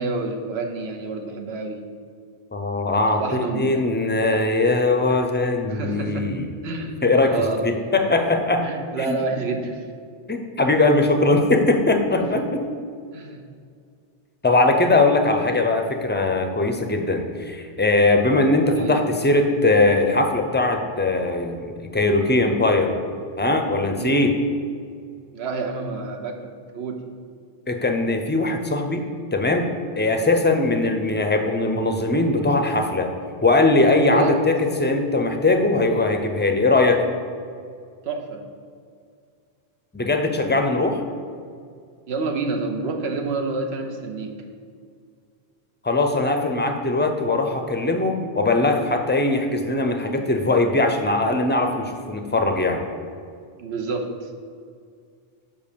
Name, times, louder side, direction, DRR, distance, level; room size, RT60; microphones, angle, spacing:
voice 1, 0.0-1.8 3.2-3.8 5.7-6.4 6.6-7.0 7.3-7.6 8.6-9.8 13.1-13.4 18.6-19.0 23.9-24.2 25.3-26.4 26.7-27.1 34.1-34.4 38.0-38.4 42.1-44.3 53.6-54.3, right 3 dB, 85° right, 4 dB, 1.1 m, -28 dB
voice 2, 2.5-3.2 3.5-6.5 7.0-7.4 7.6-8.7 9.0-9.2 10.3-12.7 14.4-22.9 23.4-24.4 27.7-29.1 29.3-29.7 30.0-33.1 33.4-37.0 39.9-41.0 45.8-52.8, left 2 dB, 15° left, 5 dB, 0.4 m, -20 dB
5.5 x 5.3 x 6.7 m, 2.2 s
omnidirectional pair, 1.0 m